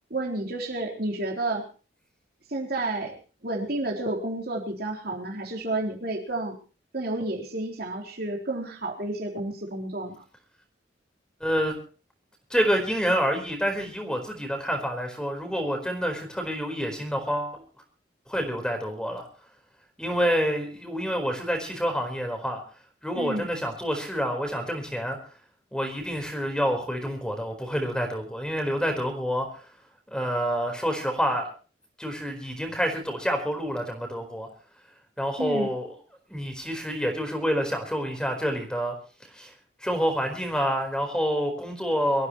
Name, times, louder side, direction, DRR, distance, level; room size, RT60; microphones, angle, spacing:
voice 1, 0.1-1.7 2.5-3.2 3.4-6.6 6.9-10.2 23.1-23.5 35.4-35.7, right 2 dB, 60° right, 0 dB, 3.9 m, -30 dB
voice 2, 11.4-11.8 12.5-17.6 18.3-19.3 20.0-22.6 23.0-25.2 25.7-29.7 30.1-31.5 32.0-34.5 35.2-36.0 36.3-38.9 39.3-39.5 39.8-42.3, equal, 5° left, 5 dB, 4.4 m, -28 dB
24.5 x 15.0 x 3.1 m, 0.36 s
head